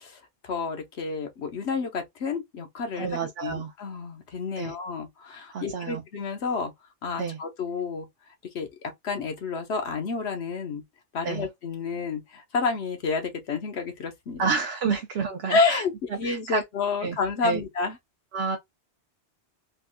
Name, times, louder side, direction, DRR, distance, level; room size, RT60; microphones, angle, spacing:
voice 1, 0.0-6.7 7.0-8.1 8.5-10.8 11.1-14.4 14.9-15.0 15.5-18.0, left 4 dB, 70° left, 1.2 m, -30 dB
voice 2, 3.0-3.7 4.6-4.7 5.5-6.0 7.2-7.4 11.2-11.4 14.4-15.8 16.2-16.6 17.0-17.2 17.4-17.6 18.3-18.6, right 5 dB, 70° right, 0.8 m, -29 dB
3.5 x 2.5 x 2.2 m
omnidirectional pair, 1.2 m